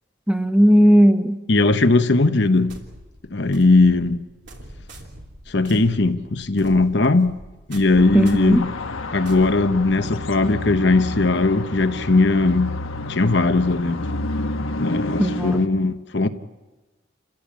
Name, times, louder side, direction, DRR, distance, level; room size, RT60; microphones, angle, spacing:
voice 1, 0.3-1.4 8.1-8.6 15.2-15.6, equal, 5° right, 0.9 m, -16 dB
voice 2, 1.5-2.8 3.3-4.2 5.5-7.4 7.7-8.7 9.1-12.7 13.1-14.1 14.8-16.3, left 3 dB, 55° left, 1.0 m, -19 dB
sound 1, 2.7-10.3, right 1 dB, 60° right, 3.2 m, -43 dB
sound 2, 8.0-15.7, left 2 dB, 85° left, 1.3 m, -30 dB
29.0 x 15.5 x 8.7 m
head